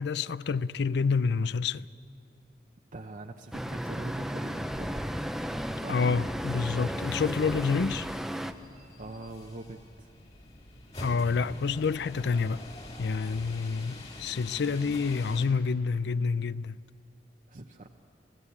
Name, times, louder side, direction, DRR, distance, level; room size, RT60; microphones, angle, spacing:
voice 1, 0.0-1.9 5.9-8.1 11.0-12.6 13.0-16.8, left 5 dB, 70° left, 0.5 m, -28 dB
voice 2, 2.9-5.4 5.8-6.0 9.0-10.1 17.5-17.9, right 2 dB, 45° right, 0.9 m, -43 dB
Traffic noise roadway noise, 3.5-8.5, equal, ahead, 0.7 m, -34 dB
sound 1, 6.8-15.5, left 1 dB, 35° left, 3.3 m, -45 dB
27.5 x 17.0 x 8.6 m
head